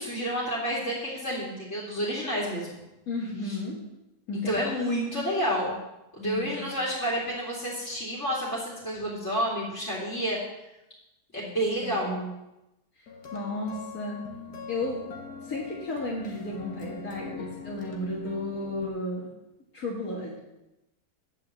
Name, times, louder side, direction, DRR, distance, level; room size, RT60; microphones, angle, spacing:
voice 1, 0.0-2.8 3.4-3.6 4.3-5.8 6.2-10.4 11.3-12.2, equal, 50° left, -5 dB, 2.9 m, -30 dB
voice 2, 3.1-3.8 4.3-4.6 6.2-6.8 11.8-12.3 13.0-13.1 13.3-14.2 14.7-15.0 15.4-19.3 19.7-20.4, left 2 dB, 65° left, -6 dB, 2.4 m, -33 dB
sound 1, 13.1-18.9, left 5 dB, 85° left, 2.0 m, -42 dB
9.7 x 6.3 x 7.3 m, 0.94 s
omnidirectional pair, 1.7 m